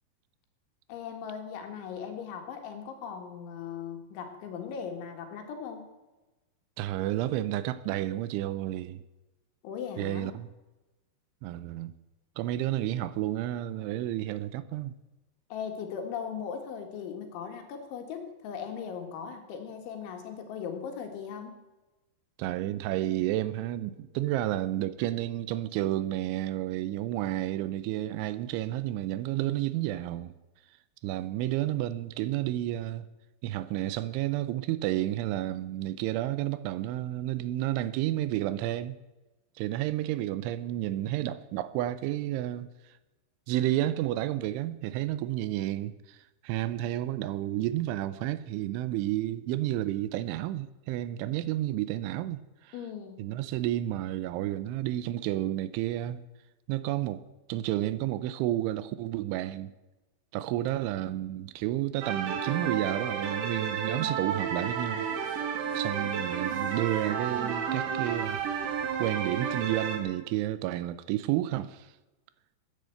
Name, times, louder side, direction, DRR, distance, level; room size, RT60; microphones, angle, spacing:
voice 1, 0.9-5.8 9.6-10.3 15.5-21.5 52.7-53.2, left 7 dB, 75° left, 4.1 m, -38 dB
voice 2, 6.8-9.0 10.0-10.5 11.4-11.9 12.4-14.9 22.4-30.3 31.0-33.1 33.4-39.0 39.6-42.7 43.5-46.2 46.4-52.7 53.2-56.2 56.7-57.2 57.5-59.7 60.3-65.1 65.3-68.4 69.0-71.9, right 14 dB, 85° right, 3.0 m, -31 dB
sound 1, 62.0-70.0, right 7 dB, 55° right, 2.5 m, -32 dB
sound 2, 64.6-70.0, left 1 dB, 20° right, 6.1 m, -50 dB
13.5 x 10.5 x 7.8 m
omnidirectional pair, 5.5 m